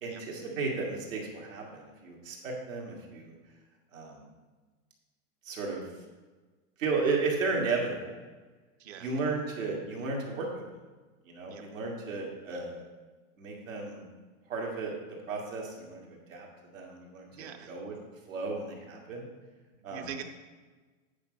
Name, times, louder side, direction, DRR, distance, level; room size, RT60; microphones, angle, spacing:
voice 1, 0.0-3.3 3.9-4.3 5.4-5.8 6.8-8.2 9.0-10.5 11.3-12.8 13.4-14.0 14.5-17.9 18.3-19.2 19.8-20.1, right 3 dB, 85° right, -1 dB, 2.3 m, -34 dB
voice 2, 17.3-17.7 19.8-20.2, right 8 dB, 55° right, 7 dB, 1.0 m, -43 dB
9.1 x 5.4 x 5.3 m, 1.3 s
supercardioid pair, 160°, 38 cm